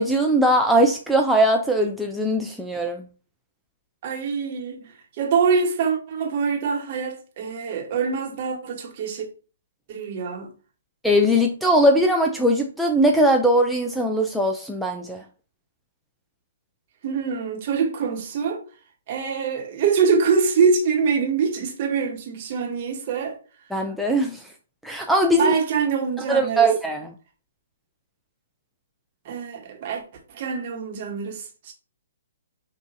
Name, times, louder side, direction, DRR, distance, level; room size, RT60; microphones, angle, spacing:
voice 1, 0.0-3.0 11.0-15.2 23.7-24.4 24.8-25.6 26.3-27.1, right 1 dB, ahead, 0.4 m, -20 dB
voice 2, 4.0-4.9 5.2-9.3 9.9-10.5 17.0-18.6 19.1-23.4 25.3-26.7 29.2-30.0 30.3-31.7, right 5 dB, 45° right, 1.2 m, -24 dB
6.0 x 2.5 x 2.7 m
figure-of-eight pair, 130°, 0 cm